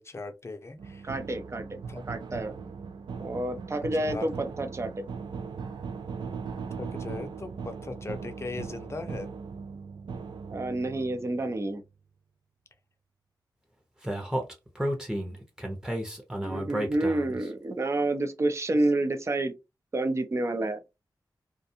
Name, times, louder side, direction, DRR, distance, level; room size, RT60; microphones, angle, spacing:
voice 1, 0.0-1.1 1.9-2.0 3.8-4.3 6.8-9.3, left 3 dB, 35° left, 0.5 m, -38 dB
sound 1, 0.8-11.7, right 5 dB, 85° right, 0.4 m, -39 dB
voice 2, 1.0-1.8 2.1-2.5 3.2-5.0 10.5-11.8 16.4-19.6 19.9-20.8, right 2 dB, 35° right, 0.6 m, -29 dB
Speech, 14.0-17.4, right 1 dB, 10° right, 0.8 m, -31 dB
2.4 x 2.3 x 2.7 m
wide cardioid pair, 95°, 8 cm